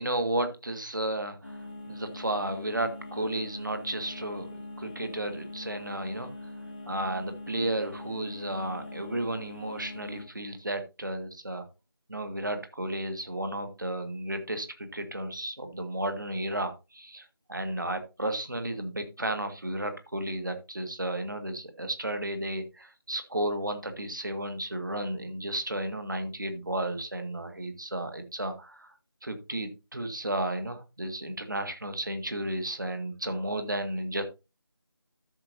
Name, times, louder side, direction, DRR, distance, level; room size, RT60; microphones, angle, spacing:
voice 1, 0.0-1.6 1.9-6.3 6.9-11.6 12.1-28.9 29.2-34.2, right 1 dB, 50° right, 7 dB, 1.8 m, -33 dB
sound 1, 1.4-10.2, left 2 dB, 5° left, 0.7 m, -42 dB
13.5 x 6.5 x 2.7 m, 0.27 s
figure-of-eight pair, 170°, 13 cm